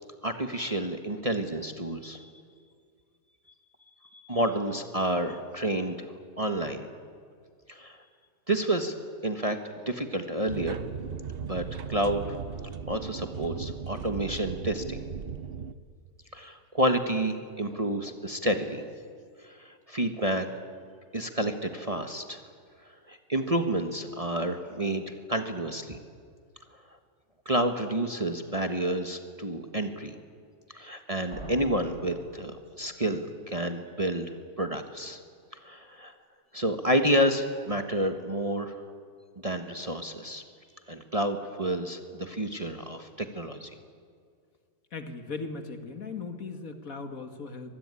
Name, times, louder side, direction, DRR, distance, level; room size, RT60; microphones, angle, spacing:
voice 1, 0.2-2.3 4.1-6.9 7.7-8.0 8.5-8.9 9.2-9.6 9.9-10.8 11.4-12.4 12.9-15.0 16.3-18.8 19.4-20.5 21.1-22.4 23.1-26.0 27.4-30.2 30.7-35.2 35.6-36.1 36.5-38.8 39.4-40.4 40.9-43.7, right 1 dB, 25° right, 6 dB, 1.4 m, -29 dB
sound 1, 10.5-15.7, right 7 dB, 45° right, 0.8 m, -37 dB
sound 2, 31.3-33.1, right 1 dB, 65° right, 5.1 m, -44 dB
voice 2, 44.9-47.7, left 4 dB, 60° left, 7 dB, 2.3 m, -38 dB
24.5 x 20.5 x 9.8 m, 2.1 s
omnidirectional pair, 1.7 m